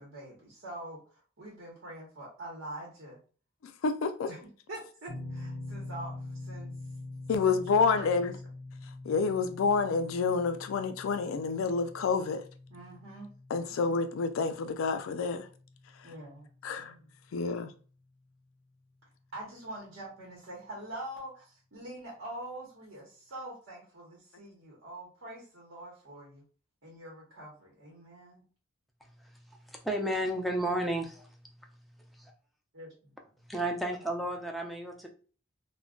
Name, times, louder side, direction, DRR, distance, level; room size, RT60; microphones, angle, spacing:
voice 1, 0.0-3.2 4.3-6.7 7.4-8.3 12.7-13.3 13.5-13.7 16.0-16.5 16.8-17.0 19.3-26.4 26.8-28.4 32.7-32.9, right 1 dB, 65° right, 0.9 m, -45 dB
voice 2, 3.6-4.3 7.3-8.3 9.1-12.4 13.5-15.5 16.6-16.9 17.3-17.7, left 4 dB, 80° left, 0.4 m, -28 dB
sound 1, 5.1-18.0, left 2 dB, 55° left, 0.8 m, -45 dB
voice 3, 29.7-31.3 33.5-35.1, right 1 dB, ahead, 0.4 m, -32 dB
2.3 x 2.2 x 3.6 m
head